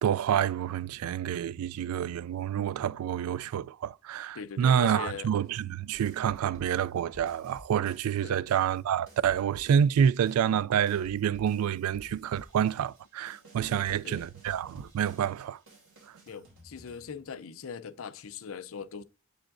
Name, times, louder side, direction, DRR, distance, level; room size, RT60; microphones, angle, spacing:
voice 1, 0.0-15.6, right 8 dB, 85° right, 0.3 m, -28 dB
voice 2, 4.3-5.3 8.2-8.4 13.7-14.2 16.3-19.0, left 6 dB, 70° left, 0.5 m, -40 dB
sound 1, 5.9-8.2 8.5-17.5, equal, 60° right, 2.8 m, -53 dB
7.6 x 4.9 x 2.5 m
head